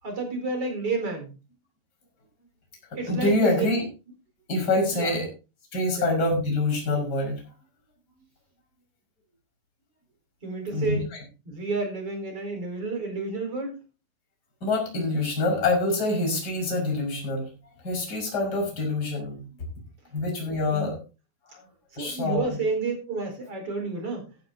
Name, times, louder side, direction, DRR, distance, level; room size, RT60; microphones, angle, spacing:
voice 1, 0.0-1.3 3.0-3.7 4.9-5.1 5.9-6.1 10.4-11.0 11.5-13.8 20.7-20.9 21.9-24.2, right 3 dB, 35° right, 3 dB, 5.3 m, -30 dB
voice 2, 3.1-3.9 4.5-5.3 5.7-7.4 10.7-11.0 14.6-17.5 17.8-19.4 20.1-21.0 21.5-21.6 22.0-22.5, left 2 dB, 25° left, 0 dB, 5.9 m, -25 dB
15.0 x 13.5 x 2.8 m, 0.32 s
omnidirectional pair, 4.7 m